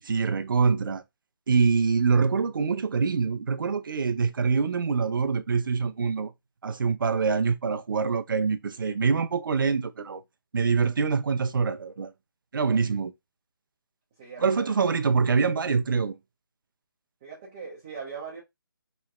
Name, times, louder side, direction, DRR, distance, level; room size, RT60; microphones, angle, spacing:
voice 1, 0.0-1.0 1.5-6.3 6.6-10.2 10.5-12.1 12.5-13.1 14.4-16.2, right 5 dB, 60° right, 0.4 m, -25 dB
voice 2, 14.2-14.7 17.2-18.4, right 5 dB, 15° right, 0.6 m, -40 dB
3.1 x 2.9 x 2.4 m
hypercardioid pair, 170°, 12 cm